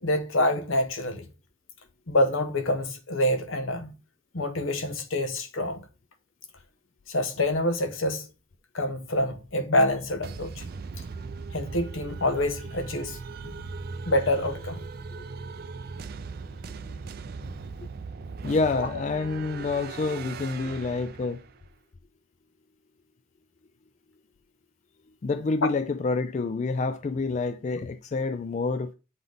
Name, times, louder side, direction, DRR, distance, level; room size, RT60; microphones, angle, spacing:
voice 1, 0.0-1.3 2.1-3.9 4.3-5.8 7.1-8.3 8.7-10.6 11.5-13.5 14.0-14.9 17.4-17.5 18.8-18.9 25.6-25.7, left 1 dB, 85° left, 1.0 m, -26 dB
sound 1, 10.2-21.6, right 4 dB, 50° right, 0.4 m, -39 dB
voice 2, 18.4-21.4 25.2-28.9, left 3 dB, 35° left, 0.3 m, -28 dB
8.0 x 3.9 x 3.5 m
head